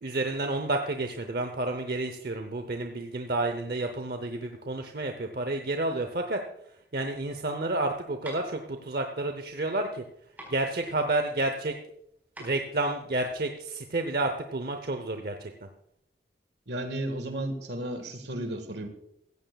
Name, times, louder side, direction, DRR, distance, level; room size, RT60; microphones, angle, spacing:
voice 1, 0.0-6.4 6.9-10.0 10.5-11.8 12.4-15.5, right 2 dB, 55° right, 6 dB, 0.8 m, -30 dB
sound 1, 7.7-13.7, right 1 dB, 10° right, 4.2 m, -49 dB
voice 2, 16.7-18.9, right 1 dB, 75° right, 7 dB, 1.7 m, -33 dB
16.0 x 15.0 x 2.3 m, 0.76 s
head